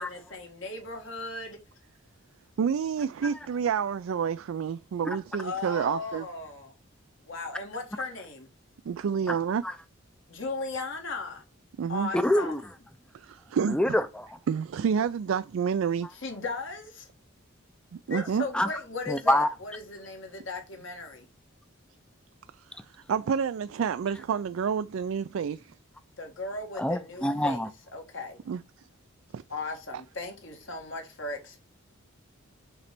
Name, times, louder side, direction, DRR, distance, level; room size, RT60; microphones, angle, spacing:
voice 1, 0.0-1.6 5.4-6.7 7.3-8.5 10.3-11.4 11.9-12.5 16.1-17.1 18.1-21.3 26.2-28.4 29.5-31.6, left 3 dB, 60° left, 1.7 m, -37 dB
voice 2, 2.6-6.2 8.8-9.6 11.8-12.1 13.1-13.8 14.5-16.1 17.9-18.4 22.6-25.7 28.5-28.9 29.3-29.4, right 7 dB, 75° right, 0.3 m, -29 dB
voice 3, 12.1-12.6 13.7-14.4 18.5-18.7 19.1-19.5 26.7-27.7, left 1 dB, 5° left, 0.5 m, -26 dB
6.7 x 3.2 x 5.9 m
head